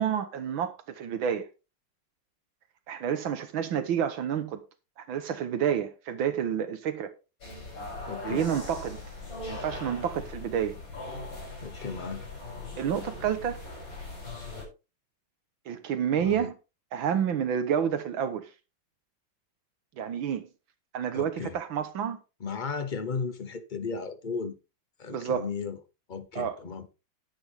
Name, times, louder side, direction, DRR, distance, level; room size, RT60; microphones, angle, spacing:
voice 1, 0.0-1.5 2.9-4.6 5.0-7.1 8.2-9.0 9.5-10.8 12.8-13.6 15.7-16.5 16.9-18.5 20.0-20.5 20.9-22.2 25.1-25.5 26.4-26.6, right 8 dB, 70° right, 1.8 m, -29 dB
sound 1, 7.4-14.7, left 2 dB, 60° left, 7.9 m, -40 dB
voice 2, 8.1-8.5 11.6-12.3 16.2-16.5 21.1-21.5 22.4-24.6 25.0-25.8 26.1-26.9, left 5 dB, 45° left, 0.6 m, -35 dB
10.5 x 10.0 x 3.5 m
omnidirectional pair, 2.3 m